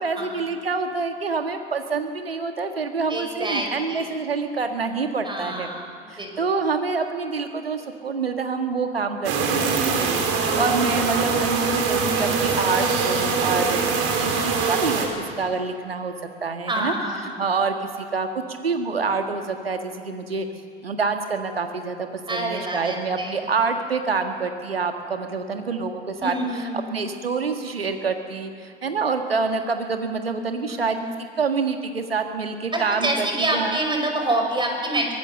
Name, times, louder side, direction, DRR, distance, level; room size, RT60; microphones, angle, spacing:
voice 1, 0.0-5.7 6.1-13.8 14.2-15.1 15.4-16.1 16.4-16.9 17.4-20.5 20.8-31.0 31.4-33.8, right 4 dB, 85° right, 6 dB, 1.8 m, -27 dB
voice 2, 3.1-4.1 5.2-5.9 6.2-6.3 12.0-12.5 16.7-17.4 22.3-23.3 26.2-26.9 30.7-31.1 32.7-35.1, right 1 dB, 15° right, 3 dB, 5.8 m, -27 dB
sound 1, 9.2-15.1, right 5 dB, 55° right, 4.0 m, -23 dB
23.5 x 18.5 x 6.8 m, 2.3 s
figure-of-eight pair, 70°, 29 cm